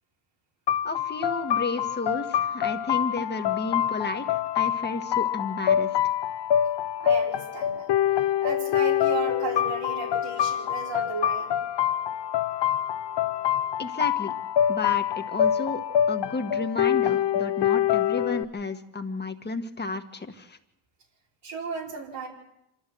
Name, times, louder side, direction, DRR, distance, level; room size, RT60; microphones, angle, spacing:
sound 1, 0.7-18.4, left 10 dB, 80° left, 0.9 m, -25 dB
voice 1, 0.8-5.9 13.8-14.3 14.7-15.8 16.1-20.6, left 3 dB, 25° left, 6 dB, 1.6 m, -32 dB
voice 2, 7.0-7.9 8.4-11.5 21.4-22.3, right 4 dB, 85° right, -3 dB, 4.6 m, -34 dB
27.0 x 13.0 x 7.8 m, 0.82 s
wide cardioid pair, 140°, 41 cm